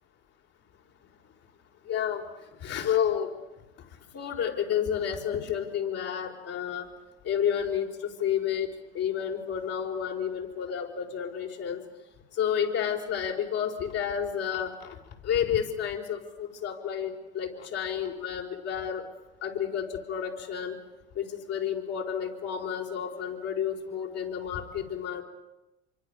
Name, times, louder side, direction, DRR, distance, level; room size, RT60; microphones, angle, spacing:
voice 1, 1.9-2.2 2.6-3.3 4.1-6.8 7.2-7.9 8.2-8.7 8.9-11.8 12.4-15.0 15.2-19.0 19.4-20.7 21.2-25.2, left 8 dB, 50° left, 1 dB, 4.8 m, -30 dB
27.0 x 24.5 x 6.9 m, 1.0 s
hypercardioid pair, 75°, 32 cm